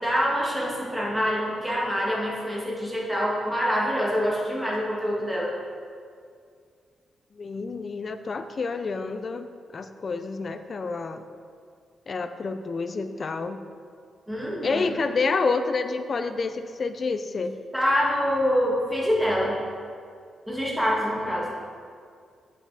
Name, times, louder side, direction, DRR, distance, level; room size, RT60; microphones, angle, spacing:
voice 1, 0.0-5.5 14.3-14.9 17.7-19.6 20.5-21.5, equal, 5° right, -5 dB, 1.8 m, -25 dB
voice 2, 7.3-9.5 9.7-11.3 12.1-13.6 14.6-17.6, left 4 dB, 40° left, 9 dB, 0.5 m, -28 dB
9.0 x 5.5 x 4.9 m, 2.2 s
cardioid pair, 120°, 0 cm